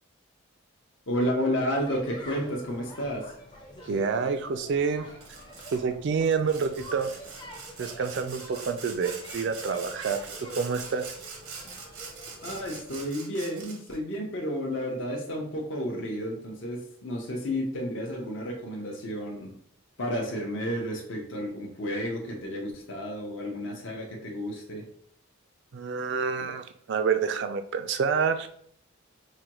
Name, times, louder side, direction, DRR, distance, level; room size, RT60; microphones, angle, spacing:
voice 1, 1.1-3.3 12.4-19.5 20.0-24.8, equal, 55° left, 0 dB, 0.7 m, -31 dB
sound 1, 1.8-13.0, equal, 20° left, 0.5 m, -47 dB
voice 2, 3.9-5.1 5.7-7.1 7.8-11.1 25.7-28.5, right 5 dB, 55° right, 8 dB, 0.3 m, -28 dB
Sawing, 5.2-5.8 6.3-14.0, right 5 dB, 90° right, 0.8 m, -43 dB
4.8 x 2.2 x 2.9 m, 0.63 s
head